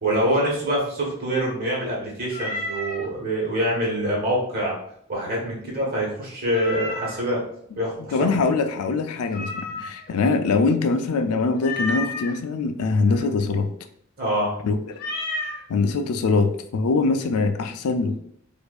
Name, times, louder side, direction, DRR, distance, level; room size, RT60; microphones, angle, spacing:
voice 1, 0.0-4.7 5.1-7.4 7.8-8.3 9.7-9.8 13.0-13.2 14.2-14.5, right 1 dB, 45° right, -3 dB, 1.4 m, -25 dB
Meow, 2.3-3.1 6.5-7.3 9.3-10.1 11.6-12.3 14.9-15.6, left 2 dB, 45° left, 0.8 m, -31 dB
voice 2, 8.1-13.7 14.6-14.8 15.7-18.1, left 4 dB, 85° left, 7 dB, 0.4 m, -23 dB
4.5 x 2.6 x 2.4 m, 0.67 s
head